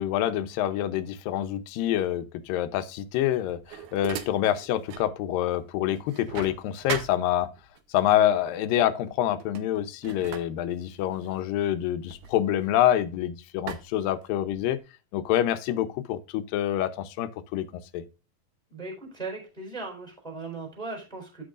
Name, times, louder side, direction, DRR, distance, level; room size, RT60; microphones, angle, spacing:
voice 1, 0.0-7.5 7.9-14.8 15.1-17.7 17.9-18.0, left 12 dB, 90° left, 2.5 m, -26 dB
sound 1, 3.1-5.2 5.5-7.8 8.7-8.9 9.3-13.1 13.7-14.8, right 10 dB, 75° right, 2.2 m, -40 dB
voice 2, 18.7-21.4, right 3 dB, ahead, 3.6 m, -38 dB
14.0 x 5.4 x 2.4 m
omnidirectional pair, 3.9 m